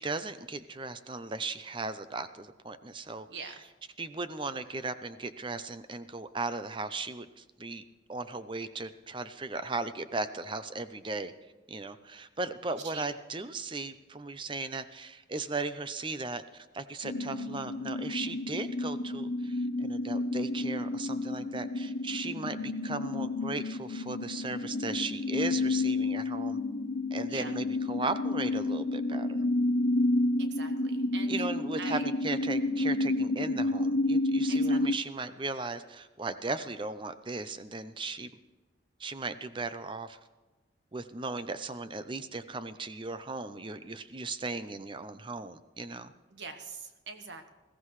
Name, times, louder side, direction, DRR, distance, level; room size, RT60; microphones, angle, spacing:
voice 1, 0.0-3.6 4.0-11.3 11.7-26.6 27.1-29.4 31.3-38.3 39.0-40.2 40.9-46.1, right 3 dB, 25° right, 12 dB, 0.6 m, -37 dB
voice 2, 12.7-13.1 27.3-27.5 30.4-31.5 31.8-32.1 34.5-34.8 46.3-47.5, right 4 dB, 60° right, 6 dB, 1.3 m, -43 dB
sound 1, 17.0-35.0, left 2 dB, 75° left, 0.7 m, -30 dB
20.5 x 15.5 x 3.2 m, 1.2 s
head